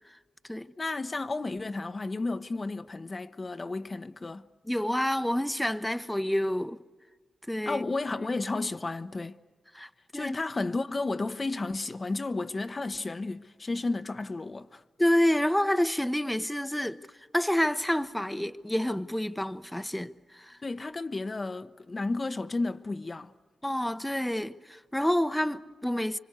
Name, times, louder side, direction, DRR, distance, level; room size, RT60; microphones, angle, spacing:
voice 1, 0.8-4.5 7.7-9.4 10.1-14.8 20.6-23.3, left 3 dB, 40° left, 0.9 m, -32 dB
voice 2, 4.7-6.8 7.5-7.8 9.7-10.4 15.0-17.0 17.3-20.6 23.6-26.2, left 1 dB, 5° left, 0.9 m, -28 dB
27.5 x 24.5 x 8.2 m
supercardioid pair, 45°, 0 cm